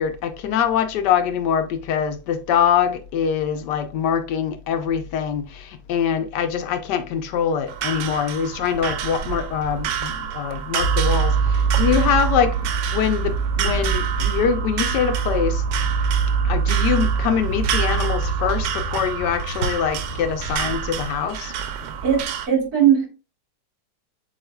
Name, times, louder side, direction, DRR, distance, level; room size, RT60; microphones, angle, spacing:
voice 1, 0.0-15.6 16.4-21.5, left 8 dB, 80° left, 1.3 m, -23 dB
sound 1, 7.7-22.5, right 8 dB, 85° right, 1.3 m, -28 dB
sound 2, 10.8-21.0, right 5 dB, 55° left, 0.8 m, -24 dB
voice 2, 22.0-23.1, right 9 dB, 60° right, 2.0 m, -19 dB
7.1 x 3.1 x 2.2 m
omnidirectional pair, 1.9 m